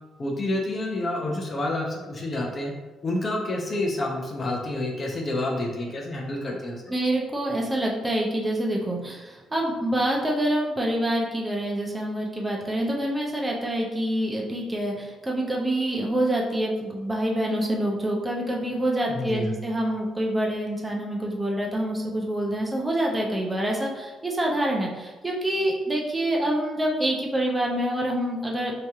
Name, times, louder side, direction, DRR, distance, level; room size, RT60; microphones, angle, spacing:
voice 1, 0.2-2.7 3.0-6.8 19.1-19.5, left 1 dB, 40° left, 0 dB, 0.7 m, -28 dB
voice 2, 6.9-28.7, right 1 dB, 15° right, -2 dB, 0.7 m, -26 dB
3.1 x 2.9 x 3.5 m, 1.2 s
cardioid pair, 90°, 0 cm